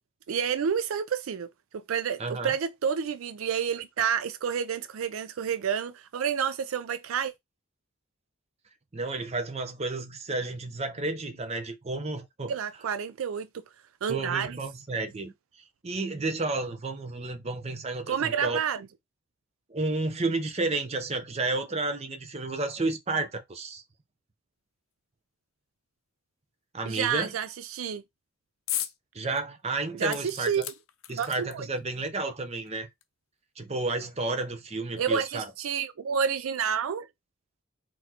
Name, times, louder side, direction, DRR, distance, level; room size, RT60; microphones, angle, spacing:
voice 1, 0.3-1.5 1.7-7.3 12.5-13.5 14.0-14.6 18.1-18.9 26.9-28.0 30.0-30.6 31.2-31.7 35.0-37.1, right 7 dB, 80° right, 0.4 m, -29 dB
voice 2, 2.2-2.5 8.9-12.5 14.1-15.3 15.8-18.6 19.7-23.8 26.7-27.3 29.1-30.7 31.1-32.9 33.6-35.5, right 3 dB, 30° right, 0.7 m, -31 dB
sound 1, 28.7-29.0 29.4-29.5 30.1-31.8 32.6-32.7 33.0-33.1, left 12 dB, 80° left, 0.5 m, -35 dB
4.0 x 3.0 x 2.8 m
head